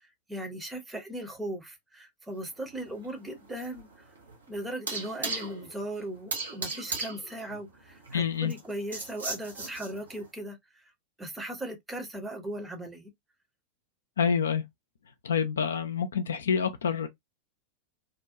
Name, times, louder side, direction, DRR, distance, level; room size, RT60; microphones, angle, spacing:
voice 1, 0.0-3.9 4.5-10.9 11.2-13.1, right 1 dB, 10° right, 0.8 m, -38 dB
sound 1, 2.4-10.3, right 3 dB, 70° right, 0.9 m, -38 dB
voice 2, 8.1-8.5 14.2-14.6 15.2-17.1, left 7 dB, 65° left, 0.4 m, -27 dB
2.7 x 2.2 x 2.4 m
figure-of-eight pair, 90°, 0 cm